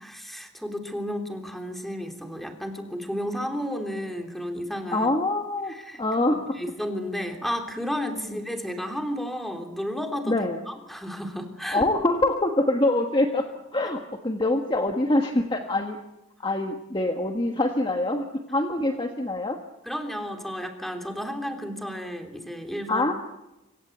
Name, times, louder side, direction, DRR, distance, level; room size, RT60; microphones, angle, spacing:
voice 1, 0.0-5.1 5.7-6.0 6.3-10.4 10.7-11.9 18.9-19.0 19.9-23.1, equal, ahead, 4 dB, 3.4 m, -32 dB
voice 2, 4.9-6.6 8.3-8.4 10.3-10.6 11.7-13.5 13.7-16.0 16.4-19.6 22.9-23.1, left 2 dB, 20° left, 4 dB, 1.5 m, -25 dB
26.5 x 25.0 x 8.1 m, 0.95 s
head